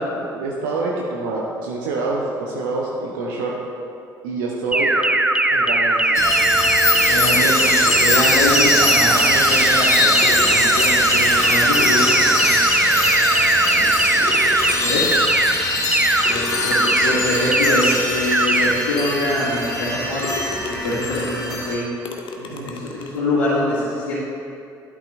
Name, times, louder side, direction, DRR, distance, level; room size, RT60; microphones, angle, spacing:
voice 1, 0.2-3.6 4.2-5.0 5.5-6.2 22.4-22.7, right 3 dB, 65° right, -3 dB, 0.9 m, -26 dB
sound 1, 4.7-14.7 15.1-15.5 15.9-16.3 16.7-17.1 17.5-17.9 18.3-18.7, right 2 dB, 10° right, 0.5 m, -18 dB
sound 2, 6.1-21.7, left 1 dB, 30° left, 2.0 m, -22 dB
voice 2, 7.0-12.6 13.7-14.3 14.8-15.2 16.2-20.3 20.7-21.9 22.4-24.2, left 1 dB, 70° left, -11 dB, 2.2 m, -24 dB
sound 3, 7.9-8.8 9.9-10.0 10.2-12.8 13.4-13.5 14.2-15.2 16.3-17.8 18.5-18.6 19.1-19.2 19.7-19.9 20.2-21.5 22.0-23.2, left 4 dB, 45° left, 0.9 m, -34 dB
12.0 x 8.3 x 2.6 m, 2.6 s
figure-of-eight pair, 55°, 12 cm